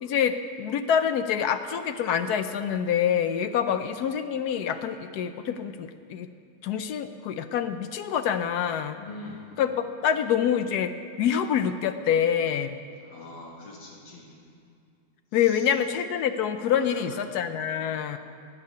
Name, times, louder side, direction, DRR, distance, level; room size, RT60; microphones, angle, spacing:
voice 1, 0.0-6.3 6.6-9.0 9.6-10.9 11.2-12.8 15.3-18.2, left 8 dB, 70° left, 10 dB, 1.0 m, -26 dB
voice 2, 8.9-9.5 13.0-14.4 15.3-15.7 16.7-17.2 18.1-18.2, left 2 dB, 85° left, -3 dB, 2.5 m, -43 dB
17.0 x 5.7 x 9.4 m, 2.3 s
omnidirectional pair, 2.0 m